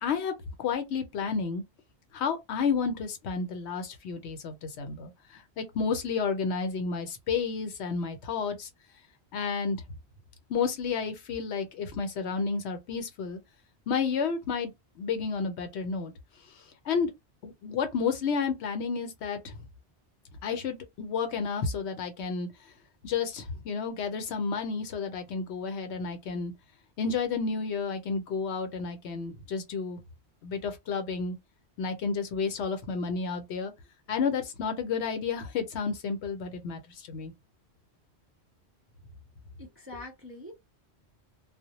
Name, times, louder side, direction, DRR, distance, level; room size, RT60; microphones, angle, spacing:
voice 1, 0.0-1.6 2.1-8.7 9.3-9.8 10.5-13.4 13.9-16.1 16.9-17.1 17.4-19.5 20.4-22.5 23.0-26.5 27.0-30.0 30.4-31.4 31.8-33.7 34.1-37.3, left 5 dB, 80° left, 0.9 m, -31 dB
voice 2, 39.6-40.5, left 2 dB, 15° right, 0.4 m, -43 dB
2.1 x 2.0 x 2.8 m
omnidirectional pair, 1.1 m